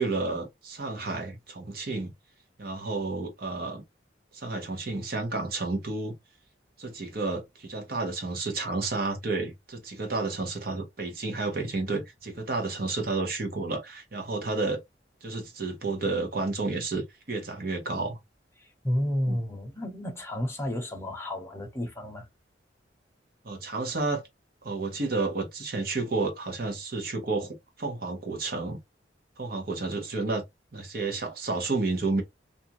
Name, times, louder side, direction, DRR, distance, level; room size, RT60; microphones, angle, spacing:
voice 1, 0.0-2.1 2.6-3.8 4.3-6.1 6.8-14.8 15.2-18.2 19.3-19.4 23.4-24.2 24.6-28.8 29.4-30.4 30.7-32.2, right 3 dB, 55° right, 0.9 m, -31 dB
voice 2, 18.6-22.3, left 1 dB, 15° left, 0.8 m, -31 dB
2.6 x 2.4 x 2.9 m
head